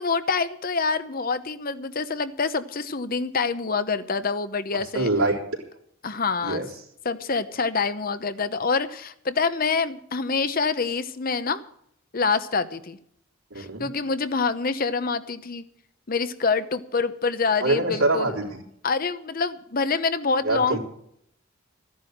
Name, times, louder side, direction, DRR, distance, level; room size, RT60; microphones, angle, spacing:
voice 1, 0.0-5.1 6.0-6.7 7.0-11.6 12.1-13.0 13.6-15.6 16.1-18.4 18.8-20.8, left 4 dB, 45° left, 12 dB, 0.9 m, -26 dB
voice 2, 4.9-5.4 6.4-6.7 13.5-13.9 17.6-18.6 20.4-20.8, right 2 dB, 90° right, 0 dB, 3.7 m, -24 dB
14.0 x 10.5 x 6.5 m, 0.71 s
head